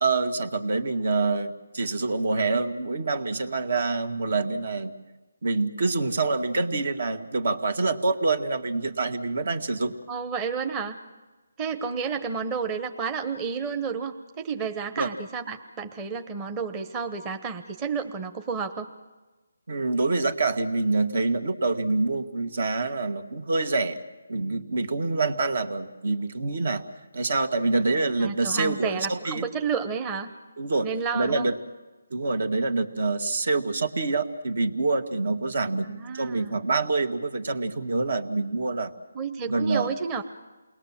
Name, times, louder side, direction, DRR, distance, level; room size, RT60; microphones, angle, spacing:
voice 1, 0.0-4.9 5.4-10.0 15.0-15.1 19.7-24.0 24.3-26.8 27.1-29.5 30.6-30.9 31.1-31.5 32.1-35.9 36.1-38.9 39.5-39.9, right 3 dB, 65° right, 8 dB, 2.1 m, -26 dB
voice 2, 10.1-11.0 11.6-18.9 28.2-30.3 30.8-31.5 35.8-36.5 39.1-40.2, right 5 dB, 15° right, 5 dB, 1.0 m, -31 dB
28.5 x 21.0 x 7.5 m, 1.2 s
figure-of-eight pair, 160°, 0 cm